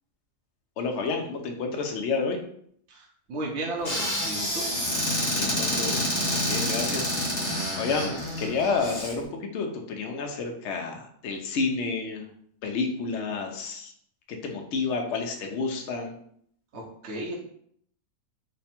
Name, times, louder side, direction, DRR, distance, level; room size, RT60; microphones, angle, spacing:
voice 1, 0.8-2.4 5.4-12.2 12.6-13.9 14.3-16.1, left 4 dB, 60° left, 2 dB, 0.8 m, -30 dB
voice 2, 2.9-4.6 16.7-17.4, right 1 dB, 60° right, -1 dB, 0.8 m, -34 dB
Squeak / Cupboard open or close, 3.8-9.1, left 1 dB, 45° left, 1.4 m, -28 dB
3.2 x 2.2 x 4.2 m, 0.66 s
omnidirectional pair, 1.5 m